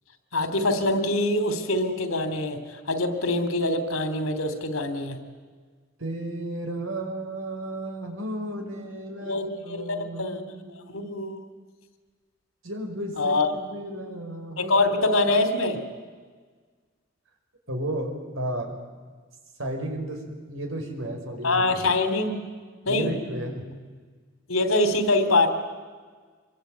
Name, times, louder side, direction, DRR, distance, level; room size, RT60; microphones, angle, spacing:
voice 1, 0.3-5.2 9.2-10.4 10.9-11.4 13.2-13.5 14.6-15.8 21.4-22.4 22.8-23.1 24.5-25.5, left 2 dB, 90° left, 9 dB, 3.1 m, -24 dB
voice 2, 6.0-10.7 12.6-14.9 17.7-18.8 19.6-21.6 22.9-23.6, right 1 dB, 75° right, 3 dB, 5.6 m, -33 dB
26.0 x 23.5 x 9.3 m, 1.5 s
head